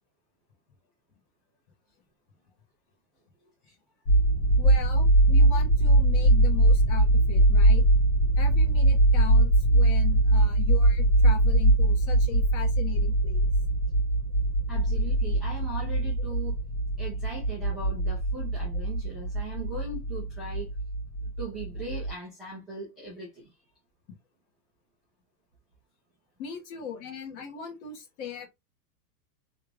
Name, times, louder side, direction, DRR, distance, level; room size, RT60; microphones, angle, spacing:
sound 1, 4.1-22.1, right 1 dB, 65° left, 1.6 m, -22 dB
voice 1, 4.6-7.8 8.4-13.5 26.4-28.5, left 7 dB, 45° left, 1.4 m, -39 dB
voice 2, 14.7-16.6 17.0-20.7 21.4-23.5, right 2 dB, ahead, 0.3 m, -39 dB
3.4 x 2.5 x 3.3 m
supercardioid pair, 150°, 49 cm